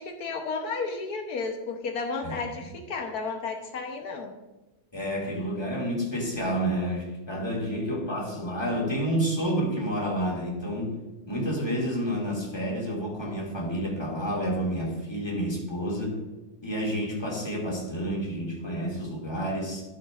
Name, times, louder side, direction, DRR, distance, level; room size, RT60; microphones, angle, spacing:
voice 1, 0.0-4.3, left 4 dB, 85° left, 2 dB, 1.5 m, -33 dB
voice 2, 4.9-10.9 11.3-16.2 16.6-19.8, equal, 15° left, -3 dB, 2.4 m, -29 dB
13.0 x 7.1 x 2.5 m, 1.1 s
omnidirectional pair, 1.6 m